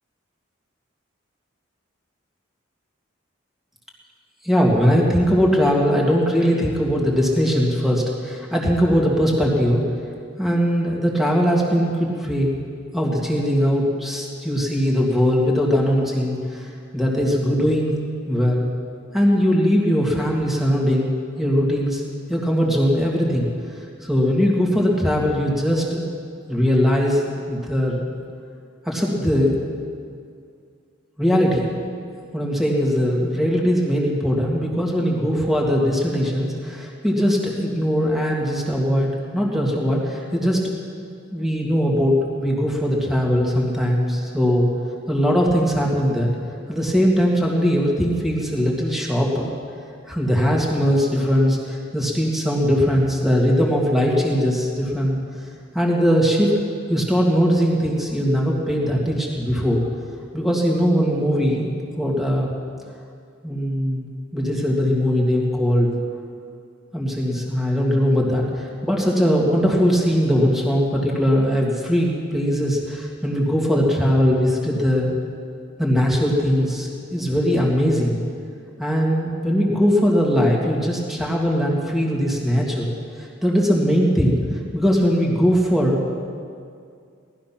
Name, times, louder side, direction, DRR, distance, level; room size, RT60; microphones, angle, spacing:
voice 1, 4.4-9.8 10.4-12.5 12.9-17.9 18.3-18.7 19.1-21.1 21.4-22.0 22.3-23.5 23.7-26.0 26.5-28.0 28.9-29.6 31.2-31.6 32.3-40.6 41.3-44.7 45.1-46.3 46.7-49.5 50.1-55.2 55.7-56.5 56.9-59.8 60.3-62.5 63.4-65.9 66.9-75.2 75.8-78.2 78.8-82.9 83.2-86.0, equal, ahead, -2 dB, 2.2 m, -20 dB
18.5 x 13.0 x 5.9 m, 2.3 s
head